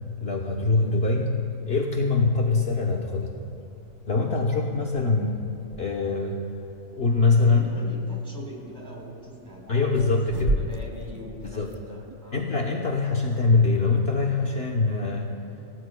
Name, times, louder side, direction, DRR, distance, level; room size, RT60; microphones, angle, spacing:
voice 1, 0.2-1.4 1.7-3.4 4.1-5.4 5.8-6.4 6.9-7.6 9.7-10.6 11.4-11.7 12.3-15.3, left 3 dB, 50° left, -1 dB, 1.2 m, -23 dB
sound 1, 0.7-14.0, right 2 dB, 45° right, 0.6 m, -38 dB
voice 2, 7.4-10.0 10.4-12.4, equal, 15° right, -3 dB, 4.1 m, -42 dB
27.5 x 18.0 x 2.2 m, 2.7 s
omnidirectional pair, 1.4 m